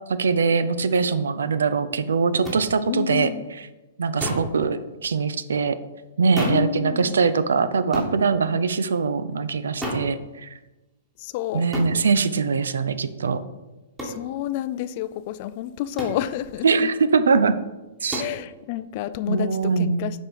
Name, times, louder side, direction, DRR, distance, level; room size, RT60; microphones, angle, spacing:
voice 1, 0.1-3.7 4.0-5.8 6.2-10.5 11.5-13.4 16.6-17.5 18.0-18.3 19.3-20.0, right 5 dB, 70° right, 13 dB, 0.5 m, -22 dB
sound 1, 2.4-2.6 4.2-4.5 6.4-6.7 7.9-8.2 9.8-10.1 11.7-12.0 14.0-14.2 16.0-16.2 18.1-18.4, equal, 15° right, 2.1 m, -29 dB
voice 2, 2.9-3.4 6.4-7.2 11.2-11.7 14.0-16.9 18.0-20.2, left 12 dB, 45° left, 13 dB, 0.4 m, -30 dB
7.4 x 4.4 x 5.2 m, 1.1 s
figure-of-eight pair, 115°, 0 cm